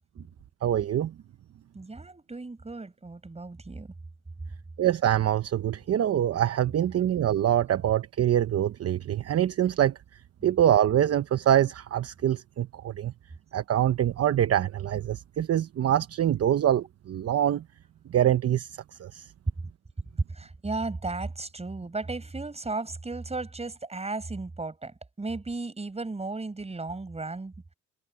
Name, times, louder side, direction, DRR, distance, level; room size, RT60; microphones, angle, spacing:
voice 1, 0.6-1.1 4.8-9.9 10.4-13.1 13.5-17.6 18.1-18.7 19.0-19.3, right 11 dB, 55° right, 0.9 m, -24 dB
voice 2, 1.7-3.9 10.4-10.5 20.3-27.5, right 3 dB, 20° right, 5.5 m, -35 dB
cardioid pair, 90°, 30 cm